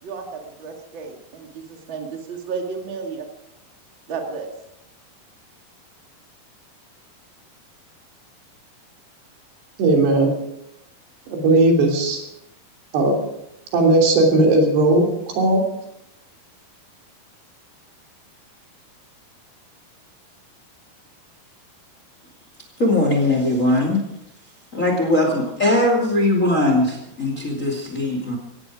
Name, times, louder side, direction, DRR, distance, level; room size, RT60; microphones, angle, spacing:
voice 1, 0.0-3.3 4.1-4.5, right 5 dB, 35° right, 2 dB, 2.3 m, -32 dB
voice 2, 9.8-10.3 11.3-12.2 12.9-13.2 13.7-15.6, right 2 dB, 80° right, 1 dB, 5.1 m, -17 dB
voice 3, 22.8-24.0 24.7-28.4, left 1 dB, 25° left, 2 dB, 2.2 m, -20 dB
17.0 x 16.0 x 4.9 m, 0.85 s
omnidirectional pair, 4.7 m